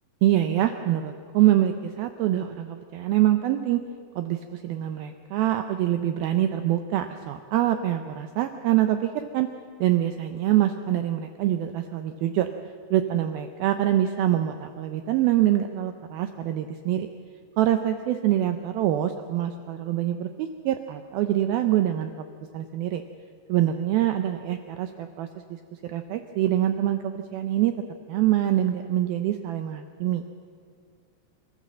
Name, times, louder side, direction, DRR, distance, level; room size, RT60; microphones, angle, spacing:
voice 1, 0.2-3.8 4.2-9.5 9.8-12.5 12.9-17.1 17.6-22.3 22.5-23.0 23.5-27.8 28.1-30.2, right 12 dB, 80° right, 8 dB, 2.2 m, -25 dB
26.0 x 14.5 x 7.4 m, 2.1 s
omnidirectional pair, 5.0 m